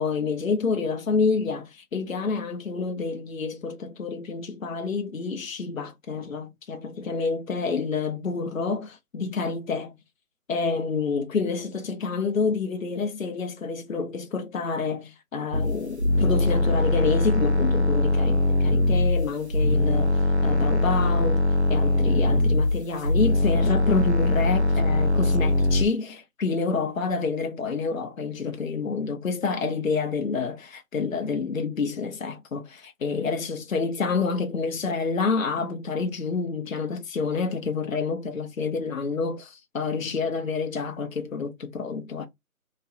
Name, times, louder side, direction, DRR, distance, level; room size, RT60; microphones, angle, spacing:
voice 1, 0.0-10.0 10.5-21.4 21.7-42.3, left 4 dB, 60° left, 0.6 m, -28 dB
sound 1, 15.5-25.8, left 2 dB, 50° right, 0.5 m, -22 dB
3.0 x 2.5 x 2.6 m
figure-of-eight pair, 175°, 45 cm